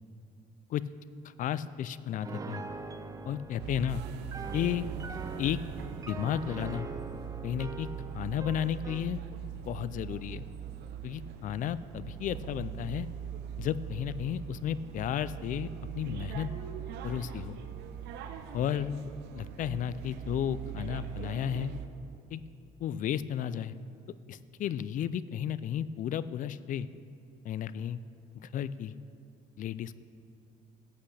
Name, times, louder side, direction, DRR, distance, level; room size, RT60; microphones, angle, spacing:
voice 1, 1.2-2.6 3.2-4.0 4.5-4.9 5.4-5.6 6.1-6.9 7.4-7.9 8.1-9.2 9.7-10.4 11.0-13.1 13.6-15.7 15.9-16.5 17.0-17.6 18.5-19.0 19.3-21.7 22.3-22.4 22.8-23.7 24.3-26.9 27.4-28.0 28.3-28.9 29.6-30.0, left 10 dB, 50° left, 16 dB, 0.4 m, -33 dB
Piano, 2.2-9.1, right 4 dB, 20° right, 0.5 m, -43 dB
sound 1, 3.6-21.9, right 9 dB, 80° right, 0.7 m, -41 dB
14.0 x 8.4 x 3.3 m, 2.5 s
cardioid pair, 110°, 17 cm